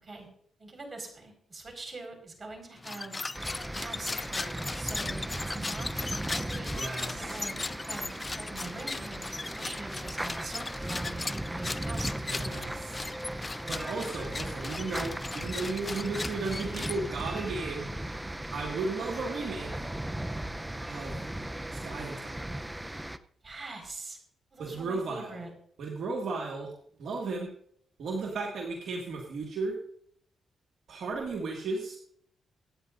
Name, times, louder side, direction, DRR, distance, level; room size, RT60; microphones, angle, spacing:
voice 1, 0.6-3.2 3.7-9.2 9.6-12.1 23.4-24.2 24.5-25.5, right 3 dB, 40° right, 3 dB, 5.0 m, -43 dB
sound 1, 2.8-17.4, left 3 dB, 25° left, 0.4 m, -38 dB
sound 2, 3.3-23.2, right 1 dB, 10° right, 0.7 m, -37 dB
voice 2, 6.8-7.4 12.3-13.1 13.7-17.9 18.5-19.9 20.9-21.2 21.7-22.5 24.6-25.4 25.8-26.7 27.0-27.5 28.0-29.8 30.9-32.0, right 3 dB, 70° right, -1 dB, 2.1 m, -35 dB
24.5 x 9.3 x 2.6 m, 0.65 s
cardioid pair, 65°, 0 cm